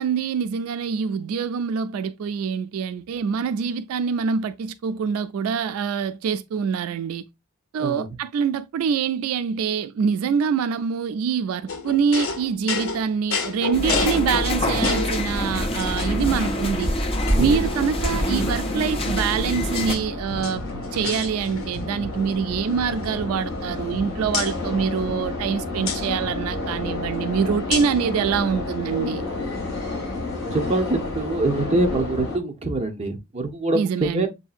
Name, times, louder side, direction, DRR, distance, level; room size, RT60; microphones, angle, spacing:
voice 1, 0.0-7.2 7.7-16.9 17.4-20.6 20.9-29.3 33.7-34.3, right 6 dB, 85° right, 0.3 m, -25 dB
sound 1, 11.7-15.3 15.8-16.4 16.8-16.9 17.3-18.3 19.1-20.0 20.3-21.9 22.1-22.4 22.7-24.0 24.3-24.5 25.9-26.0 27.7-28.0, left 5 dB, 75° left, 0.8 m, -31 dB
sound 2, 13.7-19.9, left 1 dB, 25° left, 0.6 m, -26 dB
sound 3, 15.2-32.4, left 1 dB, 50° left, 2.3 m, -30 dB
voice 2, 30.5-34.3, right 2 dB, 30° right, 0.7 m, -24 dB
6.8 x 2.7 x 2.4 m
head